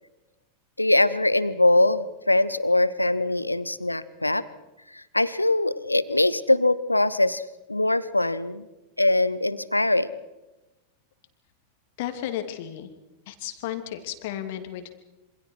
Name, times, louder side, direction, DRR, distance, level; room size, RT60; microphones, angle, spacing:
voice 1, 0.8-4.4 4.9-7.4 7.7-8.7 9.0-10.1, left 2 dB, 85° left, 17 dB, 1.0 m, -22 dB
voice 2, 12.0-12.9 13.3-14.9, left 11 dB, 50° left, 8 dB, 2.9 m, -33 dB
27.5 x 26.5 x 4.8 m, 1.0 s
figure-of-eight pair, 90°, 0 cm